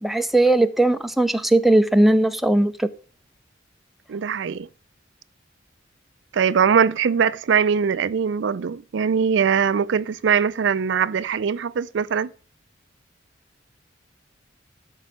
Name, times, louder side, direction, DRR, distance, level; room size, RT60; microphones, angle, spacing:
voice 1, 0.0-2.9, right 1 dB, ahead, 0.5 m, -18 dB
voice 2, 4.1-4.7 6.3-12.3, right 6 dB, 70° right, 0.4 m, -21 dB
12.5 x 5.4 x 6.3 m
head